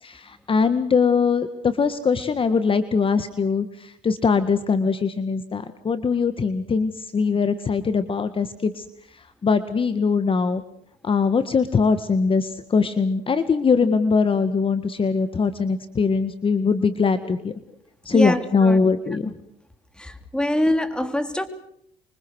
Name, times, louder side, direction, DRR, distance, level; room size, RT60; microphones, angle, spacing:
voice 1, 0.0-8.8 9.1-10.6 11.0-17.5 18.0-19.3, left 5 dB, 30° left, 10 dB, 1.7 m, -22 dB
voice 2, 18.1-18.8 19.2-19.3 20.0-21.5, left 1 dB, 5° left, 8 dB, 3.3 m, -24 dB
26.5 x 24.5 x 6.4 m, 0.69 s
cardioid pair, 110°, 17 cm